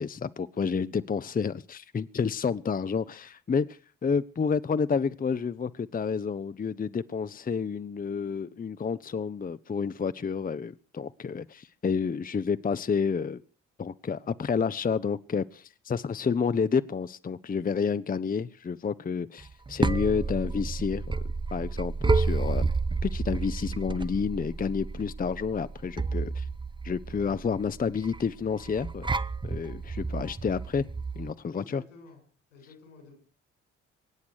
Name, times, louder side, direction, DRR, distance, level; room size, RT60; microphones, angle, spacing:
voice 1, 0.0-13.4 13.8-21.0 21.5-22.7 23.0-26.5 26.8-29.1 29.4-30.9 31.2-31.8, left 6 dB, 25° left, 0.8 m, -30 dB
sound 1, 19.4-31.3, right 4 dB, 15° right, 0.8 m, -31 dB
voice 2, 31.5-32.2 32.5-33.1, left 3 dB, 85° left, 6.8 m, -51 dB
23.0 x 9.7 x 6.3 m
figure-of-eight pair, 45°, 37 cm